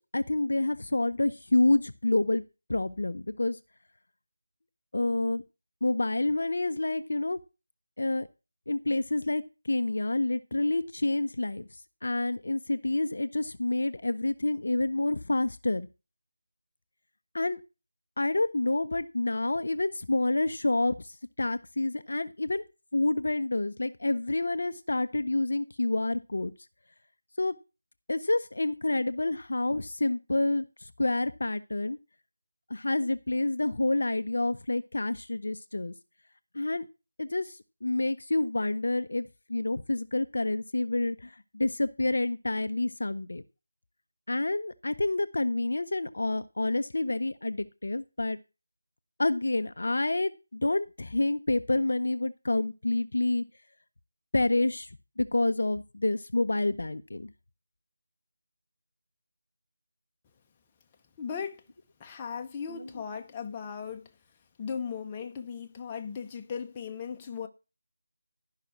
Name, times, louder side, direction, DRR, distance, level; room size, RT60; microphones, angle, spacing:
voice 1, 0.1-2.4 2.7-3.6 4.9-5.4 5.8-7.4 8.0-8.3 8.7-9.4 9.7-11.6 12.0-15.9 17.3-17.6 18.2-21.0 21.4-22.6 22.9-26.5 27.4-27.6 28.1-30.6 31.0-32.0 32.7-35.9 36.5-36.9 37.2-37.5 37.8-43.4 44.3-48.4 49.2-53.4 54.3-54.9 55.2-57.3 62.8-62.9, left 2 dB, 55° left, 0.6 m, -28 dB
voice 2, 61.2-61.7 62.0-64.1 64.6-67.5, left 6 dB, 15° left, 0.8 m, -37 dB
11.5 x 5.7 x 5.8 m
figure-of-eight pair, 160°, 0 cm